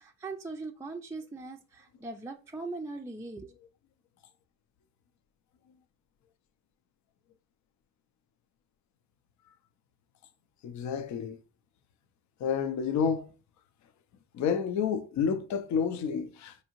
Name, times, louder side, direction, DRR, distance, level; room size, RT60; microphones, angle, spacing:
voice 1, 0.0-3.5, right 3 dB, 10° right, 0.3 m, -40 dB
voice 2, 10.6-11.4 12.4-13.3 14.3-16.6, left 6 dB, 70° left, 0.6 m, -29 dB
4.6 x 2.7 x 2.9 m
cardioid pair, 90°, 30 cm